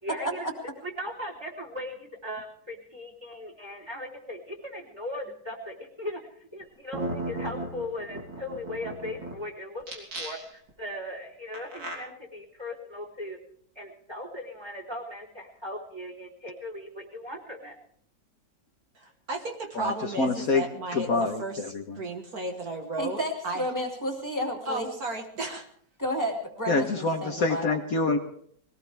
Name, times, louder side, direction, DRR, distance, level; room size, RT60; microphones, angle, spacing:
voice 1, 0.0-0.5 0.8-13.4 13.8-17.7, left 1 dB, 15° right, 0 dB, 3.7 m, -38 dB
sound 1, 6.6-6.7 6.9-9.3 9.8-10.7 11.5-11.9, right 2 dB, 90° right, 3.8 m, -35 dB
voice 2, 19.0-21.6 22.0-23.6 24.7-25.7, right 2 dB, 55° right, 3 dB, 2.0 m, -34 dB
voice 3, 19.7-20.6 20.9-22.0 26.7-28.2, left 3 dB, 55° left, 4 dB, 1.5 m, -26 dB
voice 4, 23.0-24.9 26.0-27.7, equal, 10° left, 1 dB, 2.6 m, -31 dB
21.5 x 18.0 x 3.4 m, 0.63 s
omnidirectional pair, 1.9 m